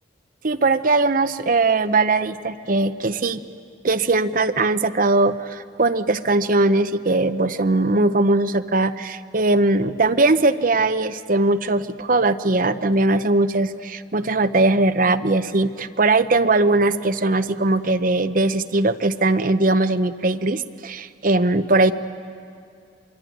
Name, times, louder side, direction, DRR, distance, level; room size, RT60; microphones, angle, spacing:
voice 1, 0.4-3.4 3.8-21.9, right 2 dB, 50° right, 10 dB, 0.8 m, -20 dB
25.0 x 23.0 x 9.3 m, 2.4 s
head